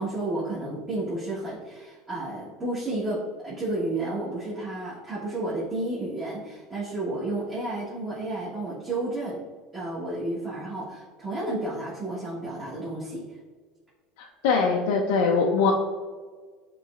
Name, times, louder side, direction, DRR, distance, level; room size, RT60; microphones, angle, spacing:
voice 1, 0.0-9.4 9.7-13.4, right 2 dB, 20° right, -9 dB, 1.3 m, -31 dB
voice 2, 14.2-15.7, left 5 dB, 85° left, 0 dB, 0.5 m, -22 dB
6.7 x 3.0 x 2.4 m, 1.5 s
supercardioid pair, 130°, 0 cm